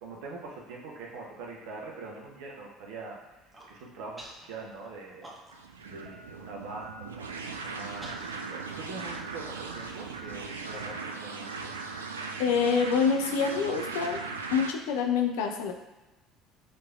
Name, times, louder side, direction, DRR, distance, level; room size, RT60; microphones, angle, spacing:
voice 1, 0.0-3.2 3.7-5.3 5.8-11.7, right 3 dB, 65° right, -1 dB, 0.8 m, -43 dB
Human voice, 3.3-3.7 4.2-4.5 4.8-5.7 6.1-6.2 6.5-6.9 7.4-10.3, right 1 dB, 15° right, 1.1 m, -50 dB
sound 1, 5.5-14.7, right 4 dB, 85° right, 0.3 m, -38 dB
voice 2, 12.4-14.2 14.5-15.7, left 6 dB, 70° left, 5 dB, 0.5 m, -26 dB
6.3 x 3.3 x 2.3 m, 1.1 s
figure-of-eight pair, 60°, 0 cm